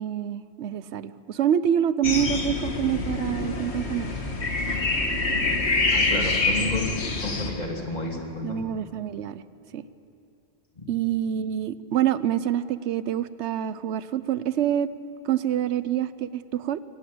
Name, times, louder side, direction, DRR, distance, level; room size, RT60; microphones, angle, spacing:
voice 1, 0.0-4.1 8.4-9.4 9.7-9.8 10.9-14.9 15.2-16.8, right 10 dB, 90° right, 16 dB, 1.0 m, -26 dB
sound 1, 2.0-7.5, left 3 dB, 75° left, 1.9 m, -26 dB
voice 2, 5.9-8.6 10.7-10.9, left 2 dB, 40° left, 1 dB, 2.8 m, -31 dB
24.0 x 17.5 x 7.7 m, 2.6 s
omnidirectional pair, 1.1 m